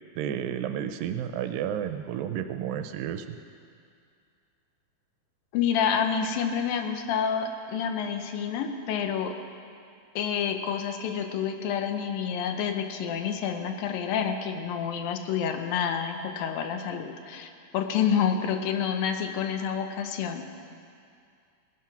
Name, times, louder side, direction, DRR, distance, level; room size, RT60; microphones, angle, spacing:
voice 1, 0.2-3.4, right 9 dB, 80° right, 8 dB, 2.2 m, -31 dB
voice 2, 5.5-9.4 10.2-20.5, left 7 dB, 80° left, 6 dB, 2.5 m, -28 dB
18.5 x 11.0 x 5.9 m, 2.3 s
omnidirectional pair, 4.2 m